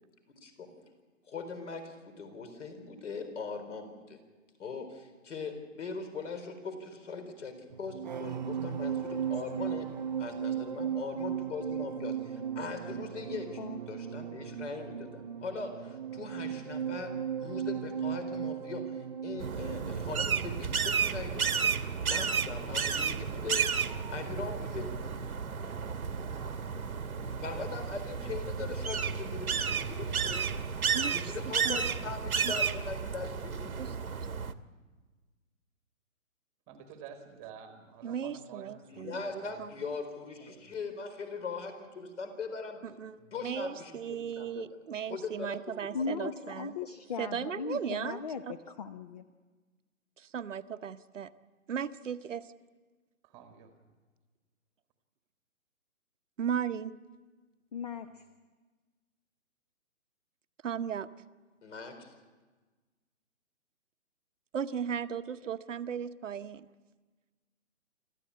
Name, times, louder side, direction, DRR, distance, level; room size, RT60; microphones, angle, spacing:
voice 1, 0.4-0.8 1.2-4.2 4.6-9.9 10.2-17.1 17.4-21.7 22.0-23.7 24.1-24.9 27.4-30.5 31.1-33.8 38.9-43.0 43.3-44.7 45.1-46.1 61.6-62.1, left 4 dB, 55° left, 8 dB, 4.3 m, -41 dB
sound 1, 7.7-24.4 24.6-24.9, right 8 dB, 35° right, 0.6 m, -37 dB
sound 2, 19.4-34.5, right 6 dB, 85° right, 1.3 m, -32 dB
voice 2, 30.9-31.3 31.6-31.8 32.4-32.5 33.8-33.9 38.0-39.7 42.8-46.7 47.2-48.2 48.5-48.6 50.2-51.3 51.7-52.5 56.4-56.9 60.6-61.1 64.5-66.7, right 8 dB, 60° right, 10 dB, 0.9 m, -36 dB
voice 3, 36.7-39.6 40.4-40.7 43.2-43.3 53.2-53.9, right 7 dB, 15° right, 6 dB, 1.4 m, -51 dB
voice 4, 45.9-49.3 57.7-58.2, left 5 dB, 30° left, 10 dB, 0.7 m, -38 dB
26.0 x 14.0 x 8.5 m, 1.3 s
hypercardioid pair, 150°, 42 cm